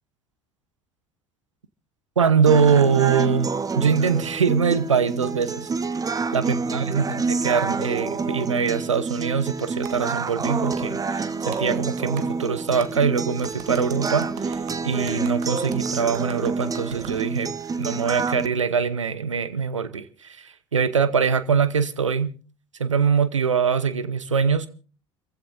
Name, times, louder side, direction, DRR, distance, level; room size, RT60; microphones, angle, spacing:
voice 1, 2.2-3.5 3.7-5.7 6.1-17.5 17.8-22.3 22.8-24.7, right 6 dB, 85° right, 0.9 m, -23 dB
sound 1, 2.5-18.5, right 4 dB, 25° right, 1.2 m, -28 dB
Clapping, 9.8-10.0 10.7-10.8 11.5-11.6 12.2-12.3 12.8-12.9 13.4-17.2, right 10 dB, 55° right, 1.6 m, -42 dB
29.0 x 15.5 x 2.7 m
figure-of-eight pair, 65°, 16 cm